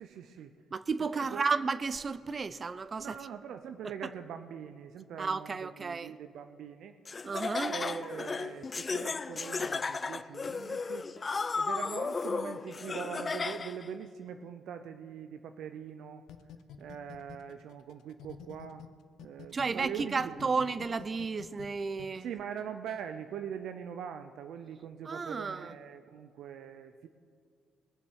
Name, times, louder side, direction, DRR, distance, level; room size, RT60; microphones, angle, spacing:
voice 1, 0.0-0.5 1.1-1.4 3.0-6.9 7.6-11.1 11.6-16.2 16.8-18.8 19.2-20.5 22.2-27.1, right 8 dB, 75° right, 0.6 m, -42 dB
voice 2, 0.7-3.2 5.2-6.1 7.2-7.8 19.5-22.3 25.0-25.7, right 4 dB, 35° right, 0.6 m, -33 dB
Laughter, 7.1-13.9, left 4 dB, 35° left, 0.5 m, -34 dB
sound 1, 16.3-18.9 19.2-22.1, left 10 dB, 85° left, 0.7 m, -48 dB
20.5 x 7.2 x 6.4 m
cardioid pair, 90°, 0 cm